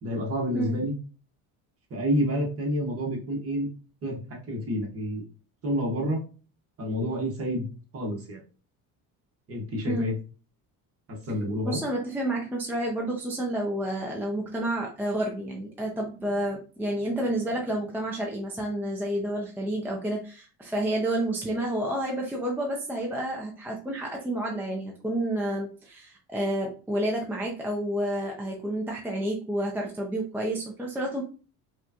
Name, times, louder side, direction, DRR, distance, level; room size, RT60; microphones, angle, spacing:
voice 1, 0.0-0.9 1.9-3.7 4.0-5.2 5.6-6.2 6.8-7.7 7.9-8.4 9.5-10.1 11.1-11.8, equal, 35° right, -1 dB, 1.3 m, -29 dB
voice 2, 11.6-31.2, right 1 dB, 5° right, -1 dB, 0.5 m, -30 dB
4.7 x 2.3 x 2.8 m, 0.36 s
cardioid pair, 150°, 40 cm